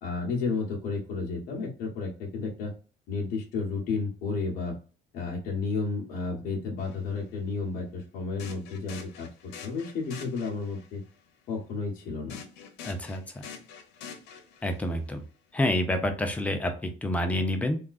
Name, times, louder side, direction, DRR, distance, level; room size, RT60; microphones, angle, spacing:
voice 1, 0.0-2.7 3.1-4.8 5.1-11.0 11.5-12.4, left 4 dB, 50° left, -2 dB, 0.9 m, -32 dB
sound 1, 6.8-7.0 8.4-10.9 12.3-14.9, left 6 dB, 85° left, 0.8 m, -45 dB
voice 2, 12.8-13.2 14.6-15.2 15.5-17.8, left 1 dB, 10° left, 5 dB, 0.4 m, -28 dB
3.5 x 2.3 x 2.4 m, 0.38 s
cardioid pair, 175°, 18 cm